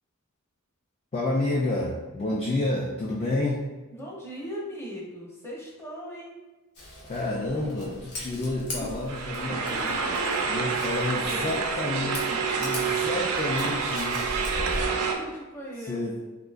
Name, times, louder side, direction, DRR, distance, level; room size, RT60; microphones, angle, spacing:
voice 1, 1.1-3.6 6.8-10.1 10.4-12.2 12.6-14.9 15.9-16.2, left 2 dB, 25° left, -4 dB, 0.3 m, -30 dB
voice 2, 3.9-6.4 9.5-10.2 10.5-12.6 13.1-13.2 14.8-16.2, equal, 10° left, -5 dB, 0.7 m, -40 dB
Scissors, 6.8-14.9, left 1 dB, 80° left, 0.9 m, -39 dB
sound 1, 9.1-15.1, right 5 dB, 90° right, 0.4 m, -28 dB
3.6 x 2.8 x 2.4 m, 1.2 s
head